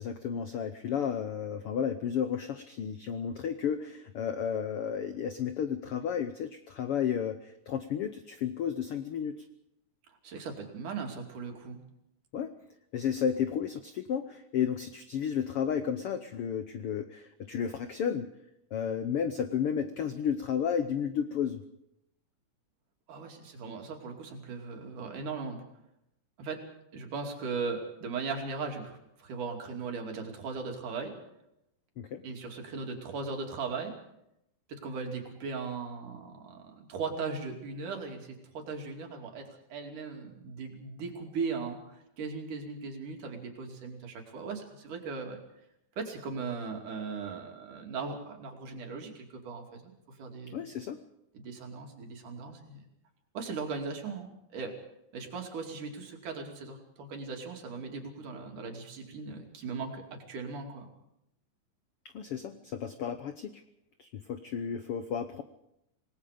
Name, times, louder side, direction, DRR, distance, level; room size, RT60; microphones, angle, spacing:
voice 1, 0.0-9.3 12.3-12.5 12.9-18.3 18.7-21.6 32.0-32.2 50.5-51.0 62.1-63.6 64.0-65.4, left 8 dB, 75° left, 9 dB, 1.3 m, -32 dB
voice 2, 10.1-11.8 23.1-25.6 26.4-26.6 26.9-31.2 32.2-33.9 34.7-45.4 46.0-50.6 51.3-52.8 53.3-54.8 55.1-60.9, right 4 dB, 70° right, 3 dB, 4.2 m, -38 dB
27.0 x 19.0 x 5.1 m, 0.82 s
omnidirectional pair, 3.8 m